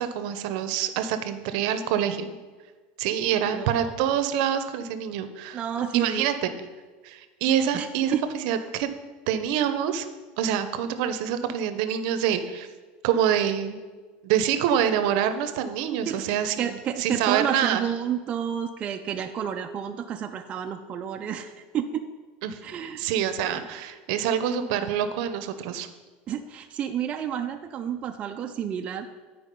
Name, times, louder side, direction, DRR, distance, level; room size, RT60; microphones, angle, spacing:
voice 1, 0.0-2.4 3.0-5.6 5.9-6.5 7.0-8.2 8.4-8.9 9.3-10.1 10.4-12.7 13.0-13.8 14.2-17.8 22.4-22.6 23.0-25.9, right 9 dB, 60° right, 10 dB, 0.7 m, -26 dB
voice 2, 3.5-3.9 5.5-6.3 7.7-8.2 16.1-22.1 22.6-23.0 26.3-29.1, right 9 dB, 25° right, 4 dB, 0.4 m, -30 dB
10.0 x 4.7 x 5.3 m, 1.4 s
supercardioid pair, 160°, 5 cm